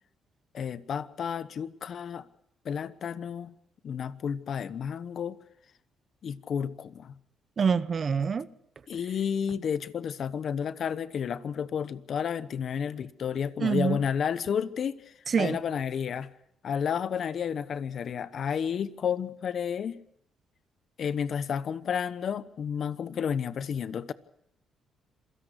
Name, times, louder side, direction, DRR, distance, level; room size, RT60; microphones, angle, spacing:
voice 1, 0.5-2.3 2.6-3.5 3.8-5.4 6.2-7.1 8.9-15.0 15.4-16.3 16.6-20.0 21.0-24.1, left 7 dB, 60° left, 1.0 m, -31 dB
voice 2, 7.6-8.5 13.6-14.0 15.3-15.6, right 6 dB, 45° right, 0.9 m, -26 dB
26.5 x 17.0 x 6.4 m
cardioid pair, 90°, 0 cm